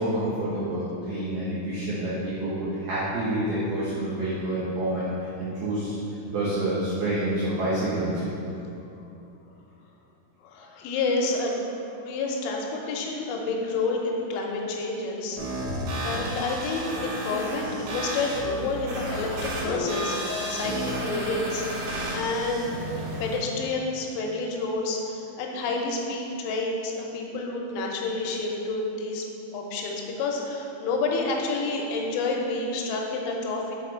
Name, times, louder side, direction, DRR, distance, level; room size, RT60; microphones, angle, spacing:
voice 1, 0.0-6.0 6.3-8.3, right 1 dB, 80° right, -11 dB, 2.2 m, -28 dB
voice 2, 10.4-11.7 12.0-15.4 15.9-21.9 22.1-22.7 23.2-29.2 29.5-33.8, left 3 dB, 85° left, 0 dB, 3.2 m, -29 dB
sound 1, 15.4-23.4, right 1 dB, 65° right, 3.0 m, -32 dB
7.2 x 4.2 x 4.4 m, 2.8 s
omnidirectional pair, 5.9 m